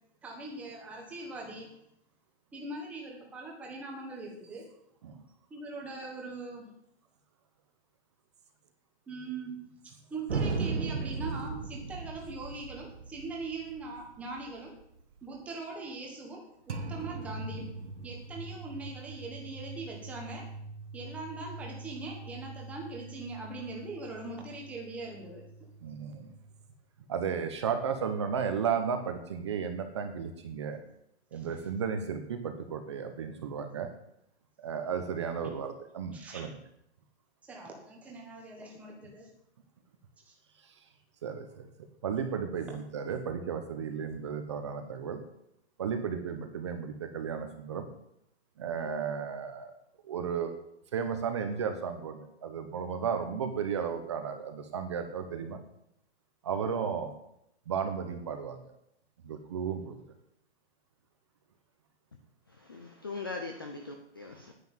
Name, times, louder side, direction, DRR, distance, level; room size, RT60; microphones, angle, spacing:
voice 1, 0.2-1.8 2.5-4.6 5.5-6.7 9.1-14.7 15.2-17.7 18.0-20.5 20.9-25.5 31.3-31.6 36.1-36.4 37.5-39.3 40.3-40.4, right 3 dB, 5° right, -1 dB, 1.3 m, -41 dB
sound 1, 10.3-15.4 16.7-26.7, right 4 dB, 80° right, 2.1 m, -40 dB
voice 2, 25.8-26.3 27.1-30.8 31.3-33.9 34.6-36.6 40.6-40.7 41.2-41.7 42.0-45.2 45.8-47.9 48.6-49.7 50.0-50.5 50.9-55.6 56.4-57.1 57.7-58.6 59.2-60.0, right 7 dB, 25° right, 7 dB, 0.9 m, -34 dB
voice 3, 62.6-64.5, left 3 dB, 20° left, 4 dB, 0.5 m, -40 dB
9.9 x 9.7 x 7.4 m, 0.77 s
hypercardioid pair, 175°, 34 cm